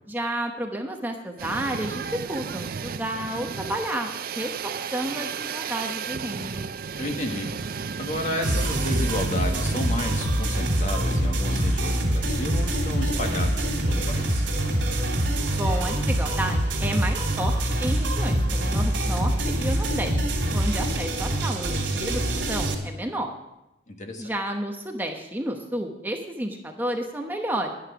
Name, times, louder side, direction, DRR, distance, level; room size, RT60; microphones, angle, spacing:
voice 1, 0.1-6.7 15.5-22.2 22.5-23.3 24.2-27.7, right 1 dB, 10° right, 3 dB, 0.9 m, -31 dB
sound 1, 1.4-10.9, right 6 dB, 50° right, 0.4 m, -34 dB
voice 2, 7.0-14.5 23.9-24.3, left 1 dB, 40° left, 3 dB, 1.5 m, -32 dB
sound 2, 8.4-22.7, right 1 dB, 80° right, 3.0 m, -25 dB
sound 3, 11.1-21.7, equal, 10° left, 2.3 m, -46 dB
11.0 x 9.9 x 6.0 m, 0.91 s
head